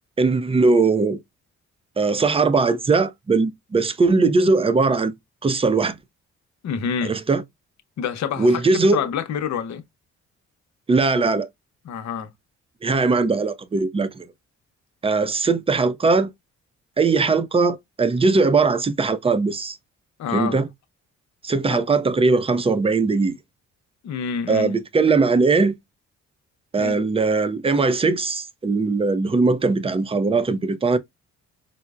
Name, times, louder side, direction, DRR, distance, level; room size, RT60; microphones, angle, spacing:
voice 1, 0.2-1.2 2.0-5.1 5.4-6.0 7.0-7.4 8.4-9.0 10.9-11.5 12.8-14.3 15.0-16.3 17.0-19.8 20.3-20.7 21.4-23.4 24.5-25.7 26.7-31.0, right 3 dB, 20° right, 0.5 m, -20 dB
voice 2, 6.6-7.2 8.0-9.8 11.8-12.3 20.2-20.6 21.7-21.8 24.0-24.7 26.8-27.0, left 7 dB, 65° left, 0.8 m, -27 dB
4.3 x 2.0 x 2.3 m
cardioid pair, 90°, 30 cm